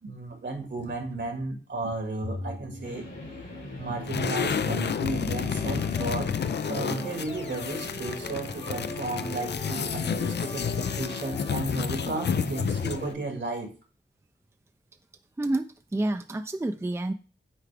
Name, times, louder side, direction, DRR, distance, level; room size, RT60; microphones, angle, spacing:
voice 1, 0.0-3.1 3.8-6.3 6.7-13.7, right 2 dB, 70° right, 3 dB, 2.1 m, -33 dB
sound 1, 2.2-13.1, left 2 dB, 85° left, 3.1 m, -41 dB
sound 2, 4.0-13.1, left 7 dB, 65° left, 0.4 m, -30 dB
sound 3, 5.5-11.5, left 2 dB, 30° left, 0.8 m, -41 dB
voice 2, 15.4-17.1, right 2 dB, 15° right, 8 dB, 0.5 m, -29 dB
8.5 x 4.6 x 3.5 m, 0.37 s
wide cardioid pair, 70°, 19 cm